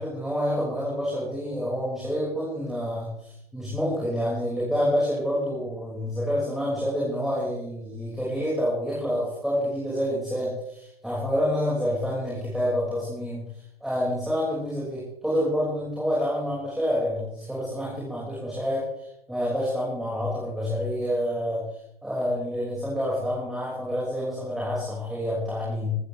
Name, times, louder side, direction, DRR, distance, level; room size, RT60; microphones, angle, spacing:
voice 1, 0.0-13.4 13.8-21.6 22.0-25.9, equal, ahead, -7 dB, 5.9 m, -28 dB
19.5 x 15.0 x 3.5 m, 0.78 s
hypercardioid pair, 140°, 30 cm